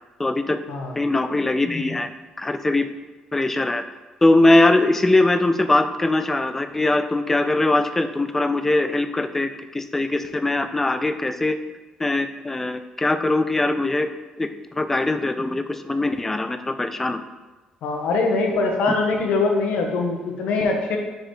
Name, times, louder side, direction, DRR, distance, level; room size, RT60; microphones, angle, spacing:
voice 1, 0.2-0.6 1.0-2.1 2.4-2.9 3.3-3.8 4.2-11.6 12.0-14.1 14.4-14.5 14.8-17.2, left 2 dB, 15° left, 9 dB, 0.3 m, -21 dB
voice 2, 17.8-21.0, left 3 dB, 75° left, 2 dB, 1.0 m, -22 dB
6.5 x 4.8 x 3.2 m, 1.2 s
cardioid pair, 140°, 2 cm